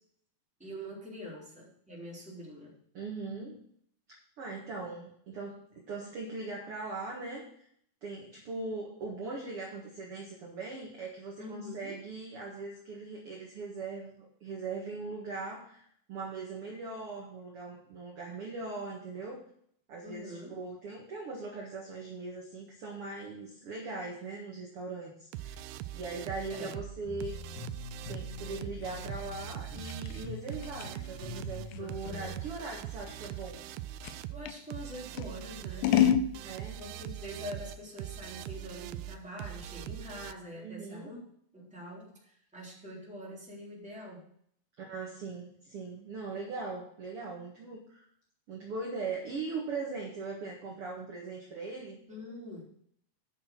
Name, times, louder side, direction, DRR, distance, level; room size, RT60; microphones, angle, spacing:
voice 1, 0.6-2.7 11.4-12.0 20.0-20.6 26.5-26.8 31.8-32.2 34.3-36.0 36.8-41.2 41.5-44.3 52.1-52.6, equal, ahead, -4 dB, 2.7 m, -44 dB
voice 2, 2.9-3.6 4.4-7.7 8.0-15.8 16.1-19.4 19.9-25.5 25.9-27.4 28.1-33.6 36.4-36.8 40.6-41.1 44.8-48.0 48.5-52.0, right 3 dB, 50° right, -1 dB, 1.7 m, -40 dB
sound 1, 25.3-40.3, right 12 dB, 80° right, 2.5 m, -42 dB
sound 2, 27.0-32.4, left 3 dB, 65° left, 4.3 m, -44 dB
Scissors, 28.4-34.6 35.2-36.3, left 10 dB, 90° left, 2.9 m, -31 dB
10.0 x 6.6 x 6.1 m, 0.67 s
omnidirectional pair, 4.9 m